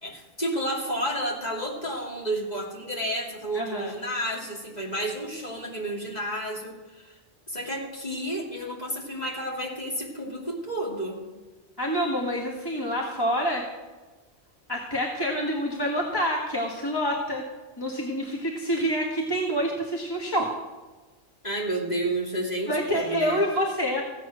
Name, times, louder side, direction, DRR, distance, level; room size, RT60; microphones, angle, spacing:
voice 1, 0.0-7.2 7.5-11.2 21.4-23.4, right 1 dB, 35° left, -2 dB, 2.8 m, -31 dB
voice 2, 3.5-3.9 11.8-13.7 14.7-17.5 17.8-20.6 22.7-24.1, equal, 20° left, -2 dB, 1.7 m, -27 dB
15.5 x 9.2 x 6.4 m, 1.3 s
omnidirectional pair, 1.2 m